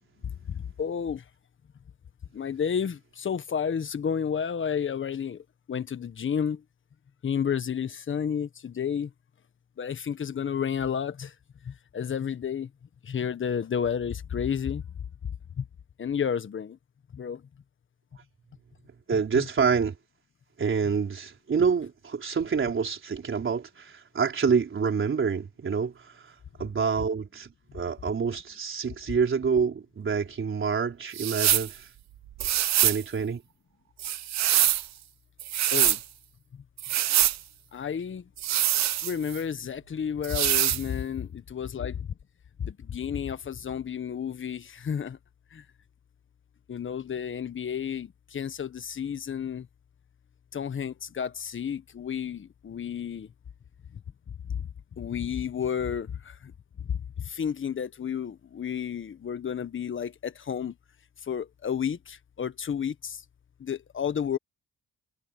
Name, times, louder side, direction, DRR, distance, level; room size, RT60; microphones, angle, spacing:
voice 1, 0.5-1.2 2.3-5.4 5.7-6.6 7.2-9.1 9.8-11.3 11.6-12.7 13.0-14.8 15.6-15.7 16.0-16.8 17.1-17.4 19.3-19.5 35.7-36.0 37.7-38.2 39.0-42.0 42.6-45.2 45.5-45.6 46.7-49.7 50.5-53.3 55.0-56.3 57.3-60.7 61.3-63.2 63.6-64.4, left 7 dB, 40° left, 1.5 m, -31 dB
voice 2, 19.1-20.0 20.6-25.9 26.6-27.5 27.7-31.9 32.8-33.4, right 6 dB, 40° right, 4.1 m, -27 dB
sound 1, 31.1-31.7 32.4-33.0 34.0-34.9 35.4-36.0 36.8-37.4 38.4-39.4 40.2-40.8, right 12 dB, 65° right, 0.9 m, -24 dB
cardioid pair, 90°, 30 cm